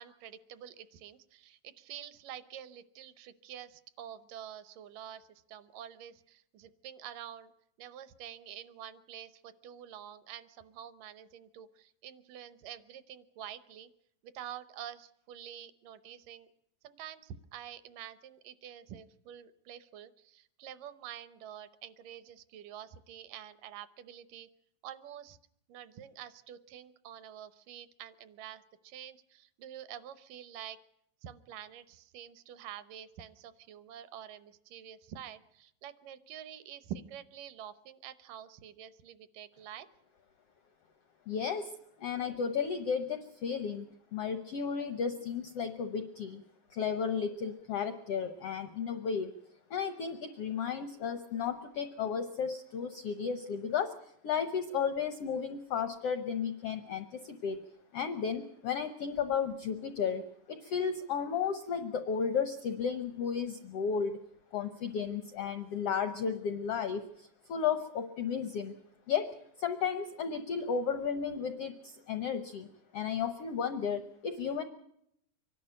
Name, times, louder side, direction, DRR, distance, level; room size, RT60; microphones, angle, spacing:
voice 1, 0.0-7.5 7.8-13.9 14.2-16.5 16.8-24.5 24.8-25.4 25.7-30.8 31.2-39.9, right 10 dB, 75° right, 14 dB, 2.4 m, -47 dB
voice 2, 41.3-41.7 42.0-46.4 46.7-49.3 49.7-54.0 54.2-57.6 57.9-64.2 64.5-68.7 69.1-72.7 72.9-74.6, left 6 dB, 75° left, 9 dB, 1.3 m, -34 dB
24.5 x 11.5 x 10.0 m, 0.75 s
omnidirectional pair, 4.0 m